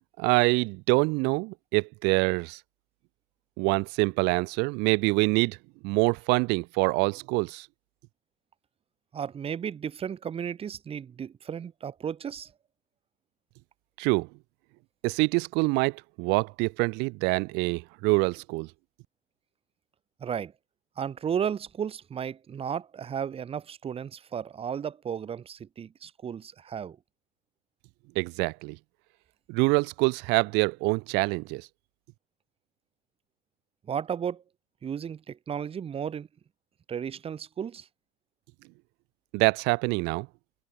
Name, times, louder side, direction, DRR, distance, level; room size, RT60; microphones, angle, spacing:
voice 1, 0.2-2.6 3.6-5.6 5.8-7.7 14.0-14.3 15.0-18.7 28.2-28.8 29.5-31.7 39.3-40.3, right 28 dB, 55° right, 0.6 m, -25 dB
voice 2, 9.1-12.5 20.2-20.5 21.0-27.0 33.9-34.4 34.8-36.3 36.9-37.9, right 8 dB, 30° right, 2.1 m, -34 dB
supercardioid pair, 110°, 21 cm